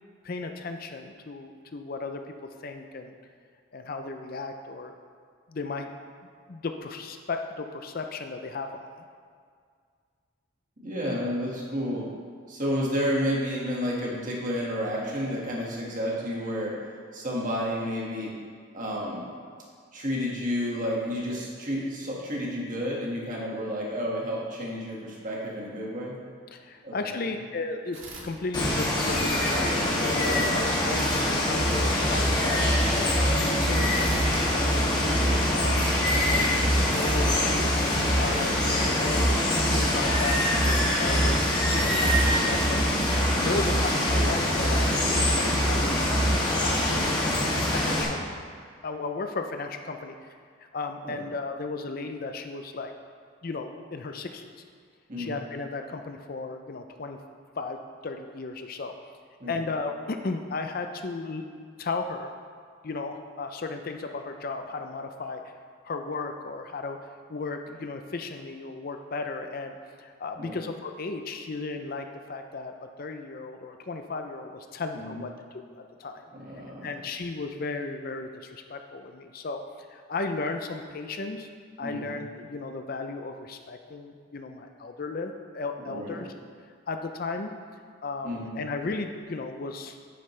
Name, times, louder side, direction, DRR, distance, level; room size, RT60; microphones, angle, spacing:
voice 1, 0.2-2.3 2.6-3.1 3.7-4.9 5.5-5.9 6.5-8.7 9.0-9.1 26.5-32.7 33.1-36.5 36.9-37.7 38.2-39.3 39.7-41.4 41.7-42.8 43.3-46.8 47.5-48.2 48.8-52.9 53.4-54.5 55.2-57.2 57.6-57.8 58.0-58.9 59.5-61.4 61.8-62.3 62.8-65.4 65.8-67.0 67.3-72.7 73.0-76.2 76.8-81.5 81.8-86.3 86.9-87.5 88.0-90.0, left 3 dB, 45° left, 6 dB, 0.5 m, -35 dB
voice 2, 10.8-12.1 12.5-16.8 17.1-18.3 18.7-19.3 19.9-26.1 26.8-27.0 30.2-30.5 38.2-38.7 43.4-43.5 51.0-51.2 55.1-55.4 59.4-59.6 70.4-70.6 75.0-75.2 76.3-76.9 81.8-82.2 85.8-86.2 88.2-88.6, equal, 40° right, -4 dB, 1.7 m, -31 dB
sound 1, 27.9-29.1 30.9-32.3 33.9-35.6 36.9-38.5, right 2 dB, 65° right, 1.7 m, -44 dB
Water, 28.5-48.0, left 1 dB, 20° left, 1.5 m, -25 dB
sound 2, 31.6-46.4, right 1 dB, 15° right, 0.5 m, -28 dB
9.9 x 8.7 x 3.2 m, 2.1 s
head